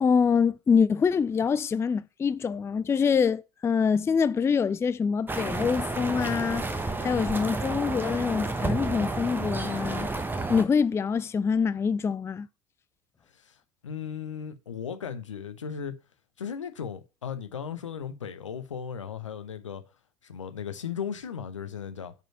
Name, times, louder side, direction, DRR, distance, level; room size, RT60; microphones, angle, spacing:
voice 1, 0.0-10.1 10.5-12.5, left 6 dB, 15° left, 0.3 m, -25 dB
sound 1, 5.3-10.6, right 2 dB, 15° right, 1.0 m, -31 dB
voice 2, 13.8-16.0 16.4-19.8 20.2-22.1, left 7 dB, 80° left, 0.8 m, -36 dB
5.3 x 4.4 x 6.2 m
figure-of-eight pair, 60°, 16 cm